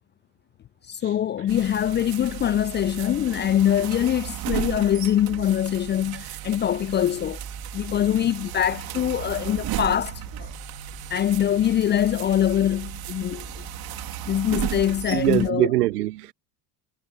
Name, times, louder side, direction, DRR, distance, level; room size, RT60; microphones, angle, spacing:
voice 1, 0.9-7.4 7.7-10.5 11.1-13.6 14.3-15.7, left 10 dB, 25° left, 0.5 m, -23 dB
sound 1, 1.5-15.5, right 15 dB, 50° right, 3.3 m, -35 dB
sound 2, 7.0-15.2, left 33 dB, 60° left, 3.8 m, -47 dB
voice 2, 15.1-16.3, right 16 dB, 70° right, 1.7 m, -22 dB
figure-of-eight pair, 60°, 48 cm